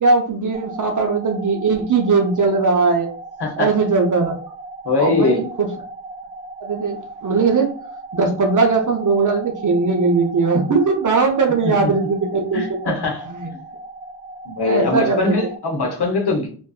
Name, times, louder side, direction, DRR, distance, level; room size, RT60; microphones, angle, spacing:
voice 1, 0.0-3.1 3.6-4.4 5.0-5.7 6.6-7.7 8.1-12.6 13.3-13.5 14.6-15.3, right 4 dB, 45° right, 0.7 m, -19 dB
sound 1, 0.5-15.6, right 2 dB, 15° right, 0.4 m, -37 dB
voice 2, 3.4-3.7 4.8-5.5 11.6-11.9 12.5-13.3 14.5-16.5, left 3 dB, 60° left, 1.0 m, -21 dB
2.5 x 2.2 x 2.3 m
cardioid pair, 60°, 44 cm